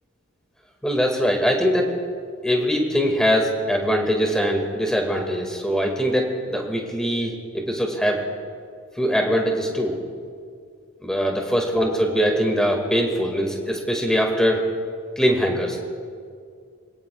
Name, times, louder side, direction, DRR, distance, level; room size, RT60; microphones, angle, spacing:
voice 1, 0.8-1.9 2.4-8.2 9.0-10.0 11.0-14.6 15.2-15.8, equal, 5° left, 1 dB, 1.9 m, -22 dB
26.5 x 17.5 x 2.3 m, 2.2 s
head